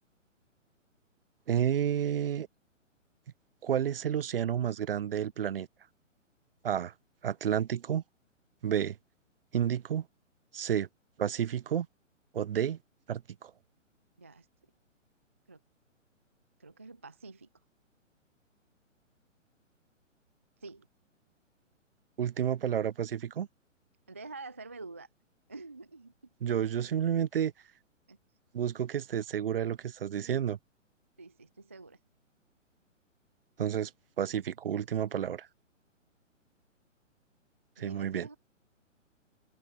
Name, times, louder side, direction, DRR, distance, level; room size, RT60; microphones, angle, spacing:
voice 1, 1.5-2.5 3.6-5.7 6.6-6.9 7.2-8.0 8.6-9.0 9.5-10.0 10.5-10.9 11.2-11.9 12.3-12.8 13.1-13.5 22.2-23.5 26.4-27.5 28.5-30.6 33.6-33.9 34.2-35.5 37.8-38.3, right 9 dB, 45° right, 1.0 m, -30 dB
voice 2, 16.6-17.5 20.6-20.9 24.1-25.1 25.5-26.1 28.1-28.2 31.2-32.0 37.8-38.4, right 3 dB, 10° right, 0.4 m, -47 dB
open air
figure-of-eight pair, 125°, 39 cm